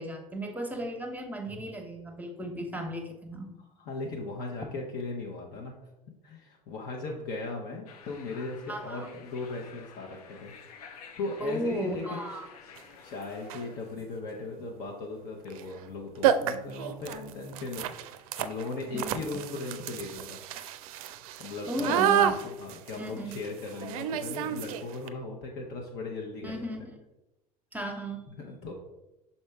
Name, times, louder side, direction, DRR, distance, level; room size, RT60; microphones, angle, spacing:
voice 1, 0.0-3.5 8.7-9.1 11.4-12.5 18.9-19.2 21.7-22.4 23.0-23.4 26.4-26.9 27.7-28.2, equal, 10° right, 4 dB, 1.1 m, -35 dB
voice 2, 3.8-5.7 6.2-10.5 11.2-12.4 13.0-20.4 21.4-22.1 22.4-26.7 28.3-28.7, left 3 dB, 50° left, -1 dB, 1.0 m, -38 dB
sound 1, 7.9-14.0, left 6 dB, 70° left, 0.7 m, -51 dB
sound 2, 12.8-12.9 13.4-13.8 15.5-15.6 15.9-16.0 16.2-25.1, right 9 dB, 65° right, 0.4 m, -30 dB
6.4 x 4.2 x 3.5 m, 0.94 s
figure-of-eight pair, 70°, 20 cm